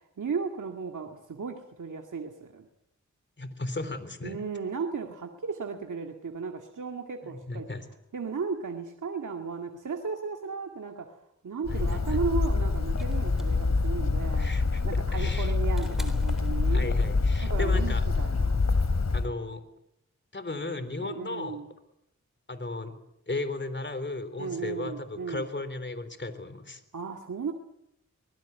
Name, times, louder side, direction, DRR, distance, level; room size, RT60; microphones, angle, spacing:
voice 1, 0.0-2.7 4.2-7.7 8.1-11.2 11.4-14.6 14.8-16.9 17.4-18.6 21.0-21.7 24.4-25.5 26.9-27.5, right 5 dB, 85° right, 3 dB, 2.2 m, -35 dB
voice 2, 3.4-4.4 7.2-7.9 11.7-12.2 14.4-14.8 15.1-15.5 16.7-18.0 19.1-19.6 20.3-21.6 22.5-22.9 23.3-26.8, left 2 dB, 40° left, 11 dB, 3.7 m, -35 dB
Bird, 11.7-19.3, left 3 dB, 60° left, 3.1 m, -26 dB
sound 1, 13.0-17.2 18.5-18.6, equal, ahead, 3.9 m, -47 dB
24.5 x 20.0 x 9.4 m, 0.83 s
cardioid pair, 55°, 30 cm